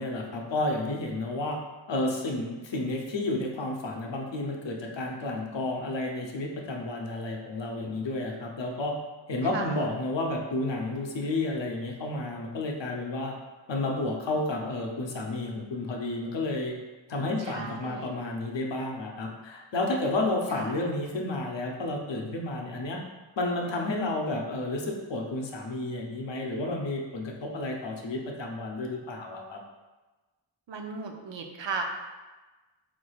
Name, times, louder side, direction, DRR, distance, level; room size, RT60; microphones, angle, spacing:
voice 1, 0.0-1.6 1.9-8.9 9.3-13.3 13.7-16.7 17.1-23.0 23.4-29.6, left 2 dB, 70° left, 0 dB, 0.7 m, -31 dB
voice 2, 9.4-9.8 17.4-18.1 20.5-20.8 30.7-31.8, right 4 dB, 70° right, 3 dB, 0.6 m, -36 dB
3.7 x 3.2 x 2.3 m, 1.2 s
wide cardioid pair, 70°, 46 cm